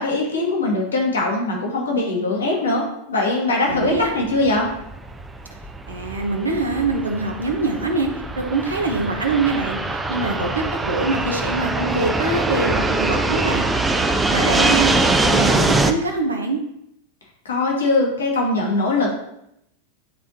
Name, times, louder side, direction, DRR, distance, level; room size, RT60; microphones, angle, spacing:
voice 1, 0.0-2.8 3.1-4.7 17.4-19.1, left 2 dB, 70° left, -1 dB, 1.5 m, -21 dB
Fixed-wing aircraft airplane, 3.7-15.9, right 2 dB, 10° right, 0.5 m, -23 dB
voice 2, 3.7-4.1 5.9-8.1 8.4-13.6 14.3-16.6, right 3 dB, 75° right, 2 dB, 0.9 m, -24 dB
10.0 x 3.5 x 2.8 m, 0.79 s
figure-of-eight pair, 90°, 0 cm